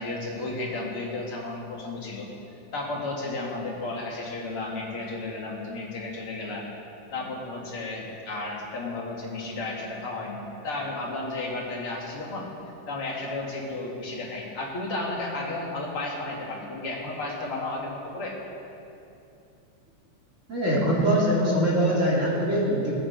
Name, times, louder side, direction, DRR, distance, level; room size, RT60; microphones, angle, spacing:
voice 1, 0.0-2.3 2.7-6.6 7.1-12.5 12.9-18.4, left 2 dB, 45° left, -3 dB, 2.5 m, -33 dB
voice 2, 20.5-22.9, equal, 25° right, -6 dB, 2.5 m, -23 dB
19.0 x 9.0 x 5.1 m, 2.7 s
omnidirectional pair, 3.7 m